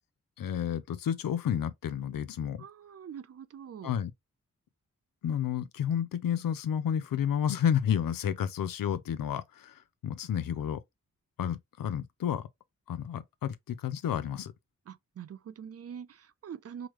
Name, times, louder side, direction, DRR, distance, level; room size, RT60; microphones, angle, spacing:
voice 1, 0.4-2.6 3.8-4.1 5.2-10.8 11.4-12.4 12.9-14.5, left 9 dB, 85° left, 0.5 m, -31 dB
voice 2, 2.6-3.9 14.9-16.9, right 8 dB, 50° right, 0.4 m, -44 dB
4.7 x 2.1 x 2.9 m
cardioid pair, 50°, 33 cm